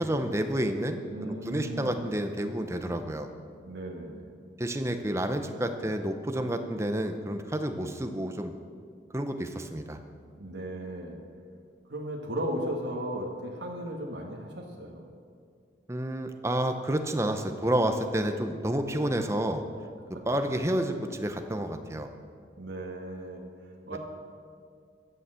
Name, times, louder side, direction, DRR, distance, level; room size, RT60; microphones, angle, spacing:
voice 1, 0.0-3.3 4.6-8.5 9.1-10.0 15.9-19.6 20.3-22.1 23.9-24.0, right 1 dB, 15° right, 6 dB, 0.7 m, -30 dB
voice 2, 1.1-2.0 3.6-4.3 10.3-11.2 11.9-15.0 20.1-20.2 22.6-23.4 23.9-24.0, right 1 dB, 65° right, 0 dB, 1.7 m, -36 dB
15.0 x 7.0 x 7.6 m, 2.1 s
head